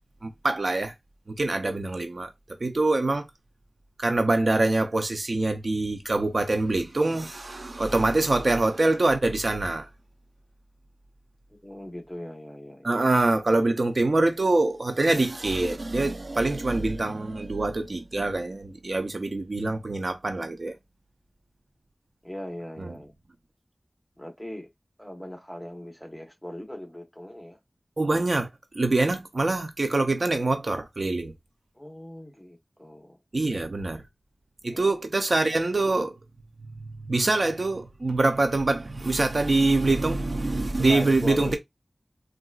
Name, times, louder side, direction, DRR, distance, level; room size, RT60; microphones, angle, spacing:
voice 1, 0.2-0.9 1.4-2.3 2.6-3.3 4.0-9.9 12.8-20.8 22.8-23.0 28.0-28.5 28.7-31.3 33.3-34.0 34.6-36.2 36.8-41.6, right 2 dB, 65° right, 0.5 m, -24 dB
voice 2, 11.6-12.9 22.2-23.1 24.2-24.7 25.0-27.6 31.8-33.2 34.7-34.9 40.9-41.6, left 1 dB, 5° left, 1.1 m, -39 dB
3.7 x 2.4 x 2.4 m
wide cardioid pair, 60°, 0 cm